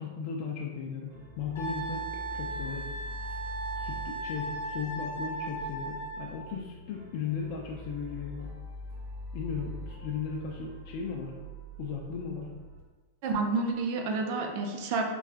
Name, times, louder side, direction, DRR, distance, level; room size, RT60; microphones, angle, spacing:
voice 1, 0.0-2.1 2.3-3.1 3.7-8.5 9.3-11.3 11.8-12.5, left 5 dB, 50° left, -2 dB, 0.3 m, -36 dB
sound 1, 1.1-12.8, left 1 dB, 70° right, 1.3 m, -44 dB
Wind instrument woodwind instrument, 1.6-6.4, right 2 dB, 80° left, 0.8 m, -37 dB
voice 2, 13.2-15.0, right 3 dB, 45° right, 3 dB, 0.4 m, -29 dB
3.8 x 2.4 x 2.3 m, 1.3 s
supercardioid pair, 155°, 0 cm